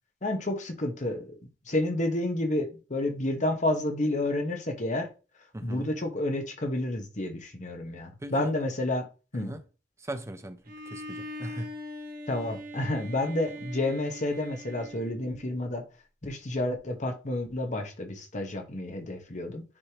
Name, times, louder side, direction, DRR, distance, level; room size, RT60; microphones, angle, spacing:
voice 1, 0.2-1.3 1.7-5.1 5.6-9.1 9.3-9.5 12.3-15.8 16.2-19.6, left 1 dB, 40° left, 1.2 m, -30 dB
voice 2, 5.5-5.9 8.2-8.5 9.3-9.6 10.0-10.6 10.9-11.7, right 1 dB, 15° right, 0.6 m, -38 dB
Bowed string instrument, 10.6-15.7, equal, 55° right, 1.3 m, -42 dB
9.8 x 3.3 x 3.0 m
head